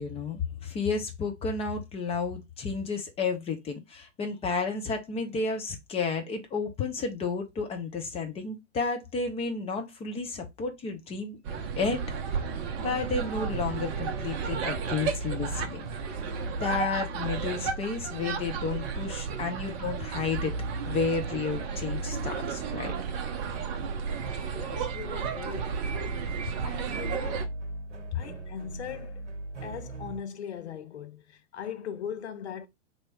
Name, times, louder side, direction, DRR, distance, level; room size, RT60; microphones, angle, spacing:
voice 1, 0.0-11.4 11.8-12.0 12.8-15.8 16.6-20.5 20.9-23.0, left 4 dB, 15° left, 0.7 m, -32 dB
sound 1, 11.4-27.5, right 6 dB, 30° right, 0.6 m, -34 dB
sound 2, 12.8-30.2, right 2 dB, 75° right, 0.9 m, -39 dB
voice 2, 24.4-25.8 26.6-27.5 28.1-29.2 29.6-32.7, left 8 dB, 65° left, 0.8 m, -40 dB
3.0 x 2.8 x 4.4 m
figure-of-eight pair, 105°, 36 cm